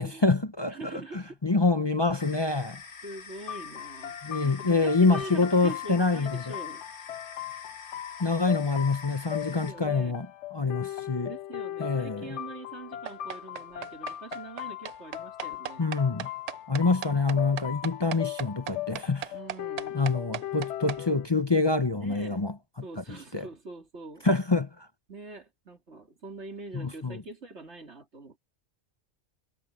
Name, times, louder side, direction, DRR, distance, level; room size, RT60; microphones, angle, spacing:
voice 1, 0.0-2.8 4.2-6.5 8.2-10.3 10.5-11.3 11.8-12.2 15.8-16.3 16.7-19.3 19.9-22.5 23.3-23.4 24.2-24.9 26.7-27.2, left 3 dB, 25° left, 0.8 m, -26 dB
voice 2, 0.7-1.4 3.0-6.8 9.5-10.2 11.3-15.9 19.3-20.0 22.0-22.5 22.8-24.3 25.1-28.4, right 2 dB, 75° right, 3.5 m, -43 dB
sound 1, 2.2-9.7, left 5 dB, 70° left, 1.9 m, -46 dB
sound 2, 3.5-21.2, left 13 dB, 90° left, 0.9 m, -38 dB
sound 3, 13.1-21.0, right 9 dB, 55° right, 0.4 m, -37 dB
omnidirectional pair, 1.2 m